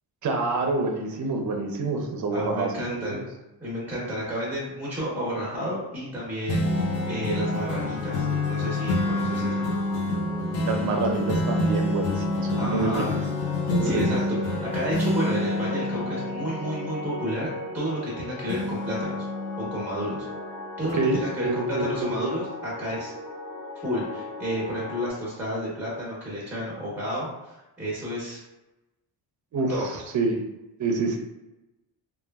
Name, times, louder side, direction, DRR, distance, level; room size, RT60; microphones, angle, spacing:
voice 1, 0.2-3.3 10.6-13.2 13.7-14.0 20.9-22.3 29.5-30.4 30.8-31.2, right 3 dB, 45° right, 3 dB, 0.5 m, -27 dB
voice 2, 2.3-3.3 3.6-9.7 12.6-13.1 13.8-17.5 17.7-19.3 19.6-20.3 20.8-23.1 23.8-27.5 27.8-28.4 29.7-29.9, equal, 5° right, -6 dB, 0.9 m, -31 dB
sound 1, 6.5-18.1 18.5-20.4 20.9-21.0, left 1 dB, 75° left, 0.7 m, -28 dB
sound 2, 6.6-25.1, left 2 dB, 35° left, 0.5 m, -37 dB
3.0 x 2.3 x 2.2 m, 0.99 s
cardioid pair, 135°, 43 cm